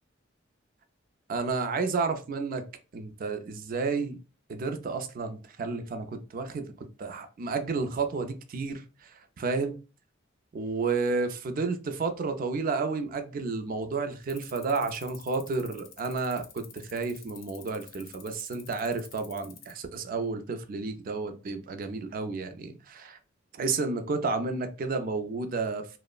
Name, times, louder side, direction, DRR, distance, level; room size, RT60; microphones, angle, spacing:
voice 1, 1.3-2.6 2.9-4.2 4.5-9.8 10.5-23.2 23.5-25.9, right 4 dB, 45° right, 0.4 m, -31 dB
sound 1, 14.2-19.7, left 9 dB, 80° left, 0.5 m, -49 dB
2.9 x 2.0 x 2.3 m
head